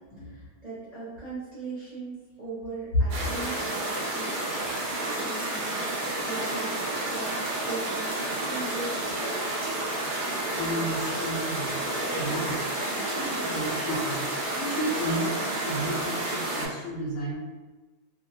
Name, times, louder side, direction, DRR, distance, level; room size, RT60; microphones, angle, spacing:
voice 1, 0.2-5.8 6.2-6.8 7.1-7.3 7.6-8.2 8.4-9.4 12.8-13.0, right 3 dB, 40° right, -10 dB, 0.7 m, -39 dB
sound 1, 3.1-16.7, right 2 dB, 85° right, 0.4 m, -30 dB
voice 2, 10.5-12.6 12.9-17.4, right 1 dB, 70° left, -4 dB, 0.8 m, -33 dB
2.5 x 2.0 x 2.6 m, 1.2 s
omnidirectional pair, 1.5 m